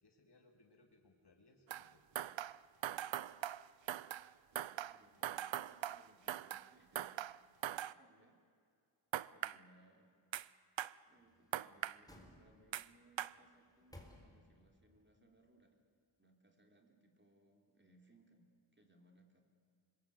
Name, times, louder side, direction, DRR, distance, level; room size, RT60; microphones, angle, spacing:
voice 1, 0.0-2.3, left 2 dB, 60° left, 2 dB, 2.5 m, -68 dB
sound 1, 1.7-1.9 2.2-4.3 4.6-6.7 7.0-7.9 9.1-9.6 10.3-10.5 10.8-10.9 11.5-12.0 12.7-12.9 13.2-13.3, right 11 dB, 75° right, 0.6 m, -41 dB
voice 2, 4.5-7.3 7.9-8.4 9.2-10.2 11.1-15.8 16.2-18.5 18.7-19.4, right 1 dB, 25° right, 3 dB, 3.8 m, -68 dB
sound 2, 11.2-12.9 13.4-14.7 15.1-15.2, left 1 dB, 10° left, 4.3 m, -60 dB
25.5 x 21.5 x 8.3 m, 2.3 s
wide cardioid pair, 55°, 45 cm